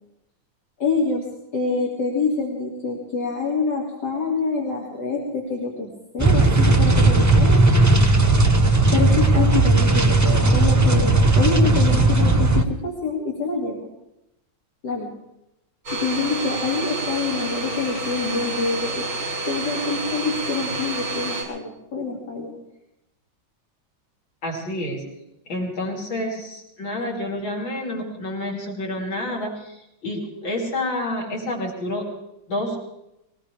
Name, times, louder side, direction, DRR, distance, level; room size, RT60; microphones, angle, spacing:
voice 1, 0.8-1.2 1.5-5.9 6.1-7.6 8.9-13.9 14.8-15.1 15.9-19.0 19.5-22.5, left 4 dB, 60° left, -3 dB, 3.1 m, -26 dB
sound 1, 6.2-12.6, right 2 dB, 25° right, 0.4 m, -16 dB
Domestic sounds home sounds, 15.9-21.4, right 2 dB, 60° right, 6.5 m, -29 dB
voice 2, 24.4-25.0 25.5-32.1 32.5-32.8, left 1 dB, 85° left, -2 dB, 4.1 m, -29 dB
22.0 x 19.0 x 3.4 m, 0.87 s
omnidirectional pair, 2.1 m